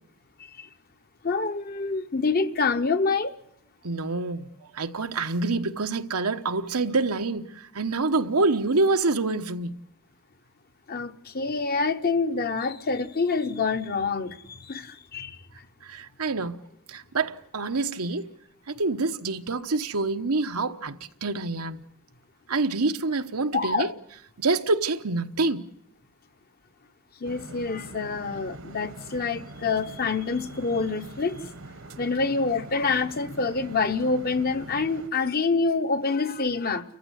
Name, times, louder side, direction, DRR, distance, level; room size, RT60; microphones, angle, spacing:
voice 1, 1.2-3.3 10.9-15.4 23.5-23.9 27.2-31.4 32.0-36.8, left 4 dB, 45° left, 1.0 m, -26 dB
voice 2, 3.8-4.5 4.7-9.7 15.8-16.6 16.9-18.3 18.7-21.8 22.5-23.9 24.4-25.6, right 3 dB, 90° right, 1.1 m, -26 dB
sound 1, 27.2-35.1, right 2 dB, 60° right, 1.1 m, -43 dB
29.5 x 15.0 x 8.2 m
head